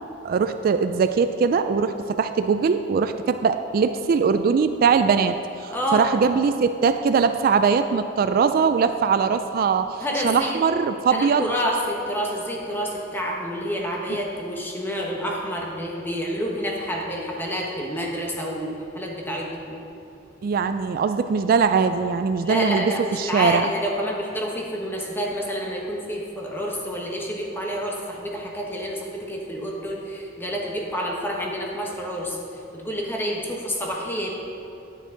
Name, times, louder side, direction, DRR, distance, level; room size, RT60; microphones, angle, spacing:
voice 1, 0.2-11.5 14.1-14.2 20.4-23.7, right 5 dB, 50° right, 9 dB, 0.3 m, -21 dB
voice 2, 5.7-6.1 10.0-10.6 11.1-19.8 22.4-32.4 32.7-34.3, equal, 10° left, -2 dB, 1.3 m, -28 dB
10.5 x 9.1 x 3.9 m, 2.7 s
head